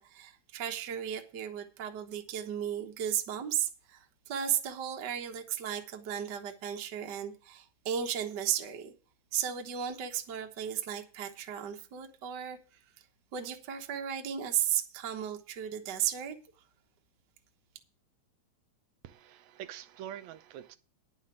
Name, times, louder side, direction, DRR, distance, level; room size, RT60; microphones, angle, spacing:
voice 1, 0.0-8.9 9.3-12.6 13.3-16.4, right 9 dB, 50° right, 1.4 m, -35 dB
voice 2, 19.0-20.8, right 10 dB, 75° right, 2.0 m, -45 dB
10.5 x 5.7 x 7.6 m
omnidirectional pair, 3.3 m